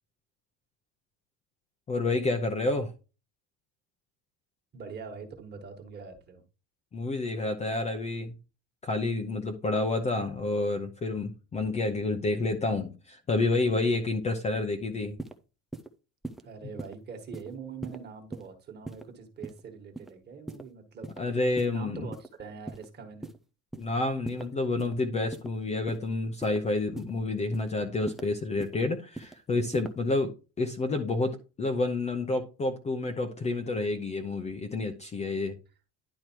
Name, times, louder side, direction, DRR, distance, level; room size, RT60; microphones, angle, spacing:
voice 1, 1.9-2.9 6.9-8.3 8.8-15.2 21.2-22.1 23.7-30.3 30.6-35.6, left 2 dB, 15° left, 0.7 m, -29 dB
voice 2, 4.7-6.4 16.4-23.3, right 5 dB, 25° right, 1.6 m, -44 dB
sound 1, 15.2-15.3 15.7-15.9 16.2-16.4 16.8-16.9 17.3-17.5 17.8-18.0 18.3-18.5 18.8-19.0 19.4-19.6 19.9-20.1 20.5-20.6 21.0-21.2 21.6-21.7 22.1-22.3 22.7-22.9 23.2-23.4 23.7-23.9 24.2-24.5 24.8-24.9 25.3-25.5 25.9-26.0 26.4-26.6 27.0-27.1 27.5-27.7 28.1-28.2 28.6-28.8 29.1-29.3 29.7-29.9, right 2 dB, ahead, 0.3 m, -39 dB
11.0 x 4.6 x 4.6 m
cardioid pair, 175°, 40 cm